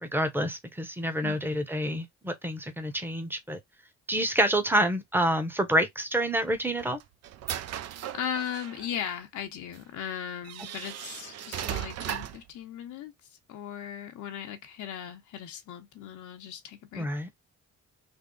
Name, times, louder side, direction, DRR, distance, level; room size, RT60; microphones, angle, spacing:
voice 1, 0.0-3.6 4.1-7.0 17.0-17.3, right 1 dB, 5° right, 0.9 m, -28 dB
voice 2, 1.2-1.7 8.1-17.1, left 9 dB, 75° left, 0.8 m, -38 dB
sound 1, 6.4-8.9 9.7-9.8 10.4-12.5, right 11 dB, 55° right, 0.5 m, -37 dB
3.5 x 2.0 x 3.8 m
cardioid pair, 90°, 30 cm